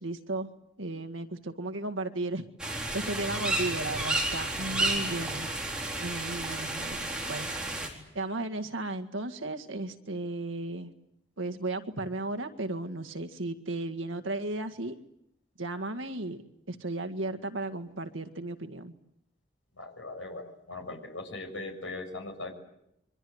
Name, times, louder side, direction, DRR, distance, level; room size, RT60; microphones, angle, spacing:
voice 1, 0.0-2.5 2.9-5.5 6.0-7.5 8.2-10.9 11.4-14.9 15.6-16.4 16.7-18.9, right 2 dB, 80° right, 8 dB, 1.9 m, -35 dB
sound 1, 2.6-7.9, right 2 dB, 5° right, 4.0 m, -31 dB
voice 2, 19.7-22.5, left 2 dB, 75° left, 5 dB, 6.3 m, -39 dB
27.5 x 24.0 x 8.0 m, 0.81 s
head